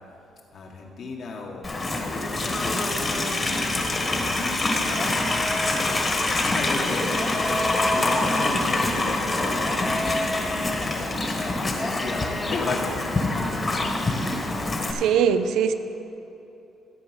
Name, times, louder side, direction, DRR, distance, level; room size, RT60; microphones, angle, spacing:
voice 1, 0.5-7.1 7.9-13.9, left 3 dB, 60° left, 0 dB, 1.7 m, -36 dB
Livestock farm animals working animals, 1.6-14.9, left 2 dB, 30° left, 1.4 m, -25 dB
sound 1, 4.8-6.1 7.1-8.8 9.6-10.9 11.7-12.6, left 1 dB, 10° left, 0.8 m, -32 dB
voice 2, 14.9-15.7, right 7 dB, 80° right, 9 dB, 0.6 m, -21 dB
13.5 x 4.8 x 8.1 m, 2.8 s
cardioid pair, 100°, 0 cm